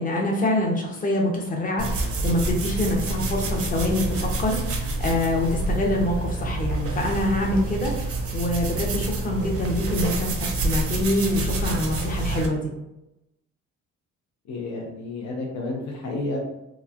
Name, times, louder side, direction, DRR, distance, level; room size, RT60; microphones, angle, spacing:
voice 1, 0.0-12.7, left 1 dB, 25° left, -1 dB, 0.7 m, -25 dB
sound 1, 1.8-12.5, right 2 dB, 50° right, 0.6 m, -27 dB
voice 2, 14.5-16.4, left 2 dB, 70° left, -1 dB, 0.7 m, -31 dB
3.0 x 2.3 x 2.4 m, 0.91 s
cardioid pair, 90°, 30 cm